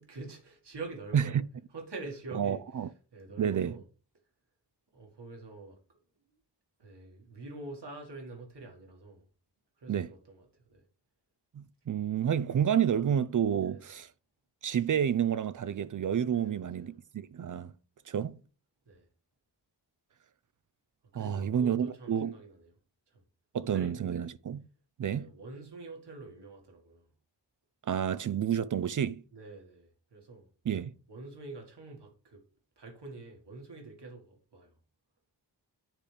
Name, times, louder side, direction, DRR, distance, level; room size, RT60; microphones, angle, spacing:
voice 1, 0.0-1.4 1.7-2.9 3.1-3.8 4.9-6.0 6.8-9.3 9.8-10.8 13.6-13.9 16.3-17.0 17.3-17.6 18.9-19.1 21.1-22.7 23.1-23.2 23.7-24.3 25.0-27.1 29.3-30.5 31.1-32.5 32.8-34.8, right 3 dB, 70° right, 1.9 m, -46 dB
voice 2, 2.3-2.9 3.4-3.7 9.9-10.1 11.5-14.1 14.6-17.7 18.1-18.4 21.1-22.3 23.5-24.6 25.0-25.3 27.9-29.2 30.7-30.9, right 8 dB, 50° right, 0.4 m, -29 dB
10.0 x 3.4 x 3.3 m
cardioid pair, 50°, 43 cm